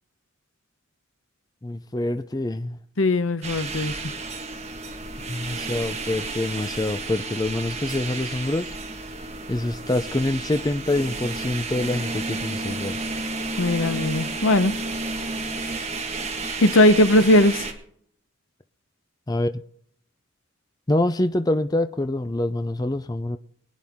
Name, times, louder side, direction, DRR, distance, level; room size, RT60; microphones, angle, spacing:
voice 1, 1.6-2.8 5.3-8.7 9.5-13.0 19.3-19.5 20.9-23.4, left 1 dB, 20° left, 0.5 m, -25 dB
voice 2, 3.0-3.9 13.6-14.7 16.6-17.7, left 1 dB, 80° left, 0.9 m, -18 dB
sound 1, 3.4-17.7, right 3 dB, 30° right, 1.7 m, -32 dB
24.5 x 9.5 x 3.6 m
head